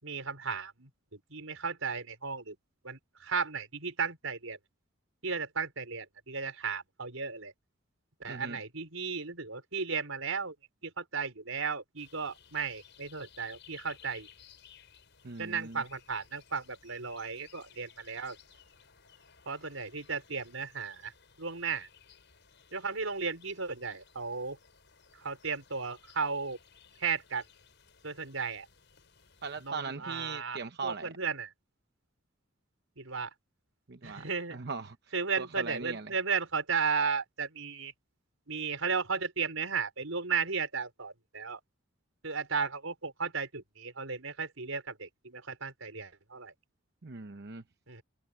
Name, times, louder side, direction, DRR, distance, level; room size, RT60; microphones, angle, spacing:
voice 1, 0.0-2.6 2.8-4.6 5.2-7.5 8.2-10.5 10.8-14.3 15.4-18.4 19.4-21.1 21.4-21.9 22.7-24.6 25.2-26.6 27.0-27.4 28.0-28.7 29.6-31.5 33.0-33.3 34.0-34.6 35.1-37.9 38.5-41.6 42.2-46.5 47.9-48.0, right 5 dB, 85° right, 4.9 m, -35 dB
voice 2, 8.3-8.6 15.2-15.8 29.4-31.1 33.9-36.1 47.0-47.6, right 4 dB, 55° right, 0.9 m, -40 dB
sound 1, 12.0-29.7, left 7 dB, 60° left, 7.3 m, -59 dB
head